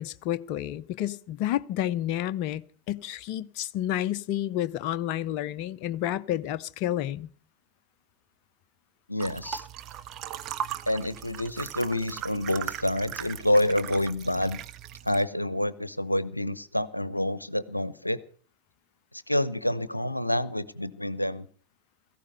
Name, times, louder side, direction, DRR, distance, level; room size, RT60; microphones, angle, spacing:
voice 1, 0.0-7.3, left 12 dB, 45° left, 0.7 m, -30 dB
voice 2, 9.1-9.6 10.9-14.6 15.0-18.2 19.3-21.5, left 1 dB, 85° left, 0.8 m, -28 dB
sound 1, 9.2-15.2, right 10 dB, 35° right, 1.0 m, -38 dB
17.0 x 14.5 x 5.4 m
figure-of-eight pair, 90°, 0 cm